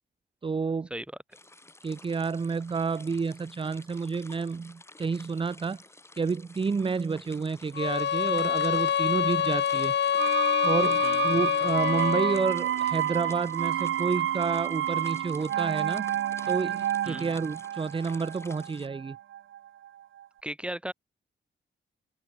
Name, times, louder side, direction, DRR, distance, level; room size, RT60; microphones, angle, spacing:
voice 1, 0.4-0.9 1.8-5.8 6.1-9.9 10.6-16.1 16.4-19.2, right 5 dB, 25° right, 0.6 m, -30 dB
sound 1, 1.3-18.9, left 2 dB, 15° left, 2.3 m, -51 dB
sound 2, 7.8-12.5, left 8 dB, 60° left, 0.9 m, -26 dB
sound 3, 10.2-19.9 20.2-20.3, right 11 dB, 80° right, 0.6 m, -30 dB
voice 2, 20.4-20.9, right 1 dB, 5° right, 2.1 m, -36 dB
open air
wide cardioid pair, 165°, 20 cm